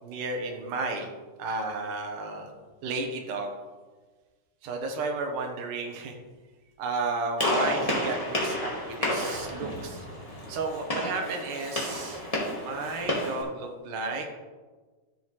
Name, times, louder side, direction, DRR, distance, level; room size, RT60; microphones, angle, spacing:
voice 1, 0.0-1.1 1.4-2.5 2.8-3.5 4.6-6.1 6.8-10.1 10.5-12.2 12.6-14.3, right 3 dB, 85° right, 2 dB, 2.8 m, -33 dB
Gunshot gunfire, 7.4-13.4, left 1 dB, 15° left, 1.3 m, -31 dB
13.0 x 7.1 x 3.2 m, 1.3 s
omnidirectional pair, 3.6 m